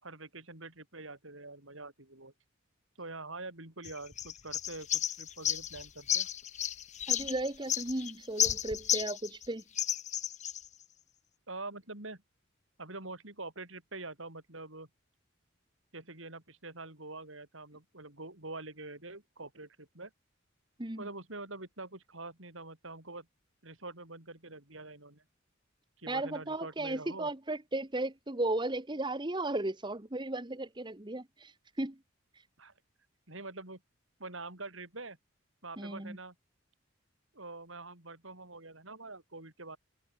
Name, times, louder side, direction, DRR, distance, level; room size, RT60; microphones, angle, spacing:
voice 1, 0.0-2.3 3.0-6.3 11.5-12.2 12.8-14.9 15.9-20.1 21.0-23.3 23.6-25.2 26.0-27.3 32.6-32.7 33.3-33.8 34.2-35.2 35.6-36.3 37.3-39.8, right 2 dB, 75° right, 5.9 m, -45 dB
sound 1, 3.8-9.5 9.8-10.7, left 10 dB, 35° left, 1.3 m, -33 dB
voice 2, 7.1-9.6 20.8-21.1 26.1-32.0 35.8-36.2, right 2 dB, 25° right, 1.3 m, -35 dB
head